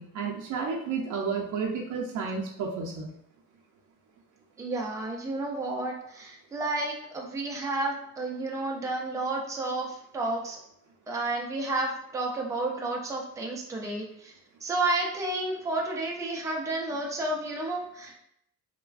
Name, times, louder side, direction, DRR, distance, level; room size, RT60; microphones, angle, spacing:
voice 1, 0.0-3.1, right 5 dB, 65° right, -1 dB, 0.5 m, -31 dB
voice 2, 4.6-10.6 11.1-14.3 14.6-18.2, right 2 dB, 10° right, -1 dB, 0.3 m, -31 dB
3.2 x 2.1 x 2.3 m, 0.74 s
cardioid pair, 160°, 33 cm